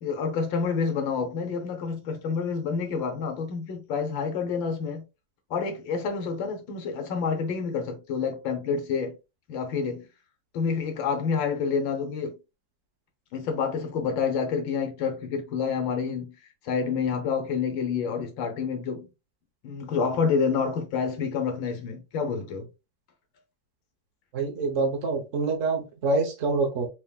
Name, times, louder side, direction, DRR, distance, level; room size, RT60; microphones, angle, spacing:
voice 1, 0.0-5.0 5.5-9.2 9.5-10.1 10.5-12.4 13.3-16.4 16.6-19.1 19.6-22.7, left 5 dB, 85° left, 1.6 m, -28 dB
voice 2, 24.3-26.9, right 3 dB, 50° right, 1.1 m, -26 dB
4.2 x 3.5 x 2.3 m
omnidirectional pair, 2.0 m